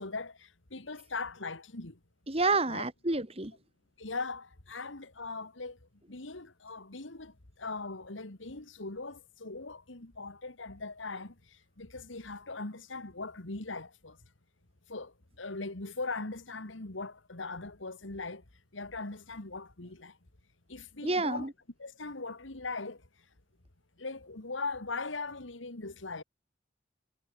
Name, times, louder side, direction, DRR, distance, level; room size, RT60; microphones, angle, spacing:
voice 1, 0.0-2.0 2.7-2.8 4.0-5.8 6.1-11.4 11.8-14.2 14.9-18.4 18.7-20.2 20.7-21.5 21.8-23.0 24.0-26.2, left 3 dB, 90° left, 2.3 m, -40 dB
voice 2, 2.3-3.5 21.0-21.5, right 3 dB, 30° right, 2.4 m, -29 dB
head